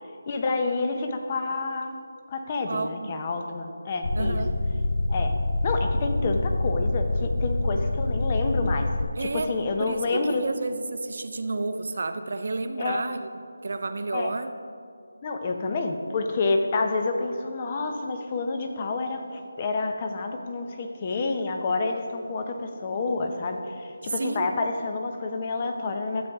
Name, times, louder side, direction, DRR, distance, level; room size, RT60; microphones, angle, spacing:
voice 1, 0.3-1.9 2.3-4.4 5.1-5.3 5.6-8.9 9.2-10.4 12.8-13.0 14.1-14.3 15.2-26.3, left 3 dB, 25° left, 5 dB, 0.7 m, -28 dB
voice 2, 2.7-3.1 4.1-4.6 9.2-9.5 9.8-13.3 13.6-14.5 24.0-24.5, right 3 dB, 55° right, 8 dB, 0.6 m, -31 dB
sound 1, 4.0-9.1, left 2 dB, 65° left, 0.5 m, -26 dB
12.5 x 7.9 x 3.6 m, 2.3 s
figure-of-eight pair, 165°, 0 cm